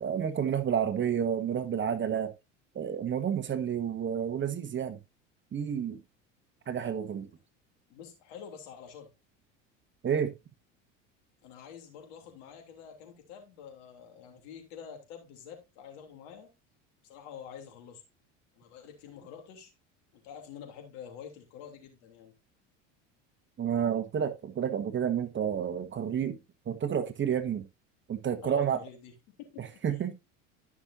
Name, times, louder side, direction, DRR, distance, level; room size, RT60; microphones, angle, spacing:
voice 1, 0.0-2.3 2.7-5.0 5.5-6.0 6.7-7.3 10.0-10.3 23.6-26.4 26.6-27.7 28.1-28.8 29.6-30.2, right 8 dB, 30° right, 1.3 m, -30 dB
voice 2, 7.9-9.1 11.4-16.5 17.0-18.0 18.6-19.7 20.2-22.3 28.4-29.4 29.7-30.0, left 7 dB, 75° left, 3.1 m, -47 dB
13.0 x 6.1 x 2.7 m
hypercardioid pair, 85°, 37 cm